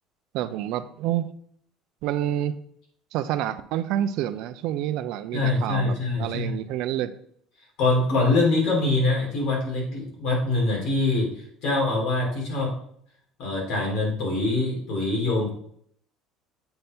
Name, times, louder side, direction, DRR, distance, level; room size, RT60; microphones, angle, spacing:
voice 1, 0.3-1.3 2.0-2.5 3.1-5.9 6.2-7.1, right 11 dB, 60° right, 12 dB, 0.4 m, -28 dB
voice 2, 5.3-6.5 7.8-11.3 11.6-12.7 13.4-15.5, left 2 dB, 60° left, -1 dB, 2.5 m, -24 dB
7.8 x 4.3 x 3.5 m, 0.65 s
cardioid pair, 170°, 0 cm